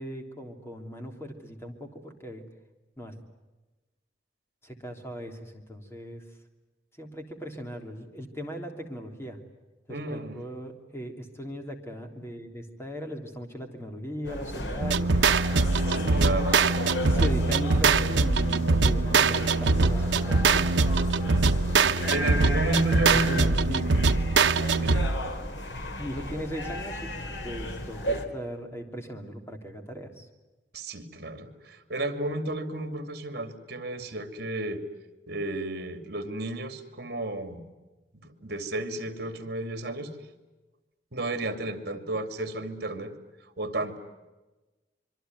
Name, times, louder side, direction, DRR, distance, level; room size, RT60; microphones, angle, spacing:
voice 1, 0.0-2.4 3.0-3.1 4.6-6.2 7.0-9.4 9.9-15.2 17.0-20.7 23.1-23.9 26.0-30.3, equal, 15° left, 4 dB, 3.4 m, -38 dB
voice 2, 9.9-10.4 15.9-16.6 22.1-23.5 24.8-25.1 30.7-34.8 35.3-37.6 38.1-40.1 41.1-43.1 43.6-44.0, right 1 dB, 60° right, 8 dB, 2.8 m, -33 dB
sound 1, 14.2-28.3, left 1 dB, 75° left, 3.0 m, -35 dB
sound 2, 14.8-25.3, right 4 dB, 85° right, 0.9 m, -23 dB
26.0 x 24.0 x 9.5 m, 1.1 s
head